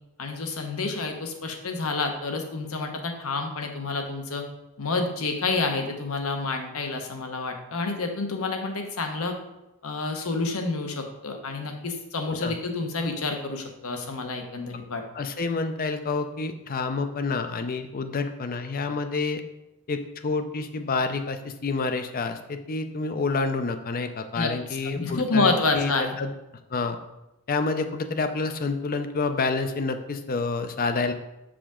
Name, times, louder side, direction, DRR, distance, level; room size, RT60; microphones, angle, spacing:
voice 1, 0.2-4.4 4.8-9.3 9.8-15.0 24.3-24.5 24.9-26.1, left 3 dB, 70° left, 4 dB, 0.9 m, -28 dB
voice 2, 15.1-19.4 19.9-25.9 26.2-26.3 26.7-27.0 27.5-31.1, left 4 dB, 40° left, 8 dB, 0.5 m, -28 dB
7.0 x 5.0 x 3.7 m, 0.93 s
head